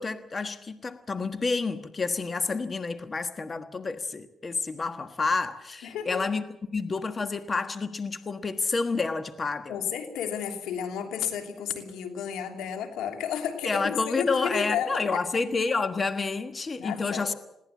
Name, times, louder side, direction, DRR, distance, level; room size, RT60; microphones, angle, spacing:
voice 1, 0.0-6.4 6.7-9.8 13.6-17.3, left 4 dB, 35° left, 1.3 m, -29 dB
voice 2, 5.8-6.2 9.7-15.2 16.8-17.3, left 8 dB, 90° left, 3.1 m, -32 dB
21.0 x 17.0 x 8.3 m
cardioid pair, 90°, 0 cm